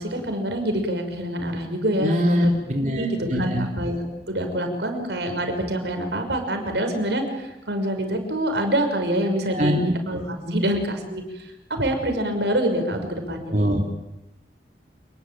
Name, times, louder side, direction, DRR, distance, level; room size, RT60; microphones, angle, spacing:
voice 1, 0.0-2.6 2.8-9.7 10.1-13.8, right 1 dB, 80° right, 5 dB, 5.9 m, -26 dB
voice 2, 2.0-3.7 9.5-9.9 10.5-10.6 13.5-13.8, equal, 45° right, 1 dB, 3.0 m, -23 dB
28.5 x 20.5 x 9.1 m, 0.92 s
head